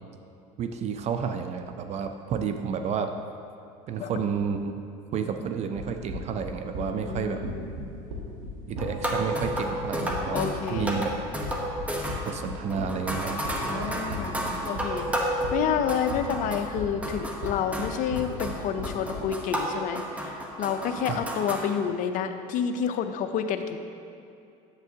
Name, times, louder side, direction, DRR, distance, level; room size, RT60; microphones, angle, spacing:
voice 1, 0.6-3.1 3.9-4.7 5.1-7.4 8.7-11.1 12.3-14.0 21.1-21.2, right 6 dB, 40° right, 7 dB, 0.4 m, -31 dB
sound 1, 5.8-19.3, equal, 90° right, 1.1 m, -37 dB
voice 2, 6.8-7.7 10.3-10.9 13.7-14.4 14.7-23.8, left 8 dB, 50° left, 8 dB, 0.5 m, -29 dB
sound 2, 8.8-16.8 17.0-21.7, equal, 10° right, 0.9 m, -32 dB
8.1 x 7.2 x 2.8 m, 2.6 s
supercardioid pair, 105°, 17 cm